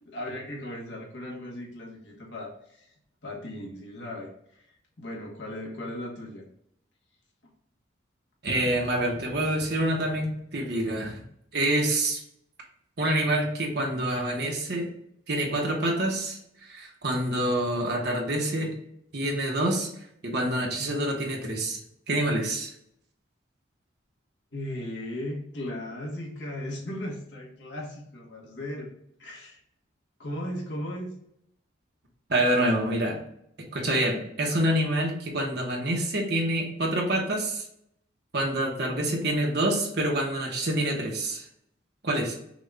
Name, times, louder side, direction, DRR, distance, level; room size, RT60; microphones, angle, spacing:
voice 1, 0.0-2.9 3.2-6.4 24.5-28.9 29.2-29.6 30.2-31.1, left 1 dB, 65° left, -2 dB, 1.5 m, -37 dB
voice 2, 8.4-11.2 11.5-12.2 13.0-14.9 15.3-16.4 16.7-18.7 19.1-19.9 20.2-21.8 22.1-22.7 32.3-33.2 33.7-37.6 38.3-41.4 42.0-42.3, right 1 dB, 55° right, 0 dB, 1.2 m, -26 dB
6.1 x 2.5 x 3.4 m, 0.74 s
head